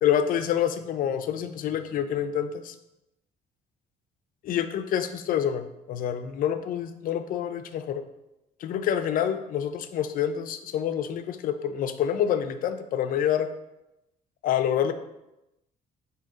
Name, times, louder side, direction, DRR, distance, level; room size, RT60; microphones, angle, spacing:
voice 1, 0.0-2.7 4.4-8.0 8.6-13.5 14.4-14.9, left 9 dB, 55° left, 9 dB, 0.4 m, -27 dB
3.7 x 2.8 x 4.6 m, 0.91 s
cardioid pair, 110°, 17 cm